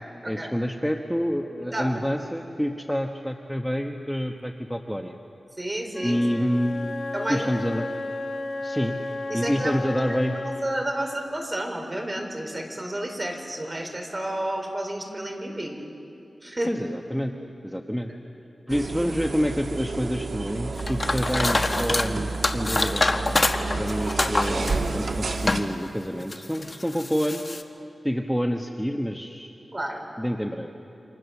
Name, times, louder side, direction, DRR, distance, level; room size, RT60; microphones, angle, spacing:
voice 1, 0.2-5.2 6.0-7.0 7.3-8.1 8.6-9.0 9.3-10.4 16.7-17.3 17.6-18.1 18.7-23.1 23.7-27.4 28.0-29.5 30.2-30.7, equal, ahead, 3 dB, 1.2 m, -28 dB
voice 2, 1.7-2.0 5.6-6.2 7.1-7.5 9.3-10.1 10.4-15.8 16.4-16.7 29.7-30.1, right 1 dB, 30° right, 3 dB, 4.2 m, -31 dB
Wind instrument woodwind instrument, 5.9-10.9, left 2 dB, 60° left, 2.8 m, -33 dB
sound 1, 18.7-25.6, right 3 dB, 75° right, 1.7 m, -30 dB
sound 2, 20.8-22.1 22.4-25.7 26.2-27.6, left 2 dB, 35° left, 1.4 m, -26 dB
29.5 x 25.5 x 7.1 m, 2.8 s
wide cardioid pair, 85°, 0 cm